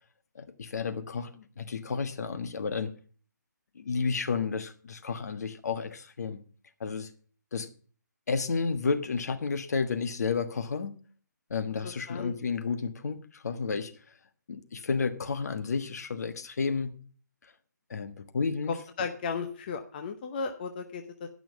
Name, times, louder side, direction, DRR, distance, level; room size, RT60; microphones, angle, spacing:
voice 1, 0.3-2.9 3.7-6.4 6.8-7.1 7.5-7.7 8.3-11.0 11.5-13.9 14.5-17.0 17.9-18.7, left 5 dB, 55° left, 1.4 m, -31 dB
voice 2, 11.8-12.3 19.0-21.3, left 5 dB, 30° left, 0.9 m, -35 dB
11.0 x 6.0 x 8.2 m
hypercardioid pair, 160°, 10 cm